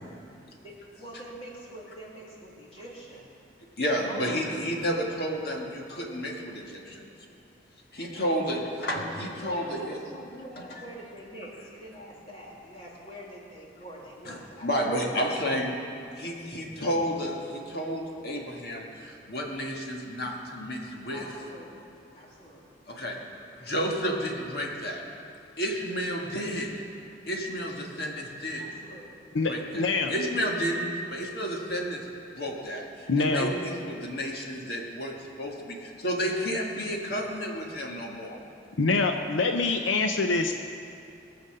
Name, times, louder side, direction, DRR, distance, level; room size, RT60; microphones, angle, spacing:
voice 1, 0.6-3.3 4.0-4.5 8.4-8.6 8.9-9.1 9.4-14.7 21.1-21.9 22.1-22.6 28.6-29.1, equal, 30° left, -4 dB, 2.6 m, -45 dB
voice 2, 3.8-7.1 7.9-10.0 14.2-15.7 16.2-21.3 22.9-23.2 23.5-25.0 25.6-26.9 27.3-28.7 29.4-29.8 30.1-32.0 32.3-38.4, equal, 55° left, -1 dB, 1.8 m, -31 dB
voice 3, 29.3-30.1 33.1-33.5 38.8-40.5, left 3 dB, 90° left, 5 dB, 0.7 m, -25 dB
21.0 x 7.0 x 6.6 m, 2.6 s
head